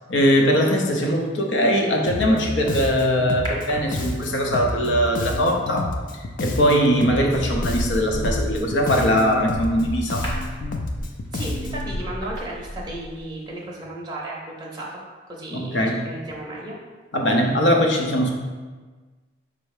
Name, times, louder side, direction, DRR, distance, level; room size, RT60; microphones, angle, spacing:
voice 1, 0.1-5.9 6.4-10.3 15.5-16.0 17.1-18.3, equal, 80° left, 1 dB, 0.7 m, -21 dB
Bass guitar, 2.1-12.0, left 2 dB, 45° left, 0.4 m, -29 dB
sound 1, 3.5-4.5 6.4-6.6 7.1-13.3 13.6-13.7, equal, 25° left, 1.0 m, -33 dB
voice 2, 11.3-15.0 15.3-16.8, right 1 dB, 20° right, -4 dB, 0.6 m, -34 dB
5.4 x 2.0 x 4.7 m, 1.4 s
head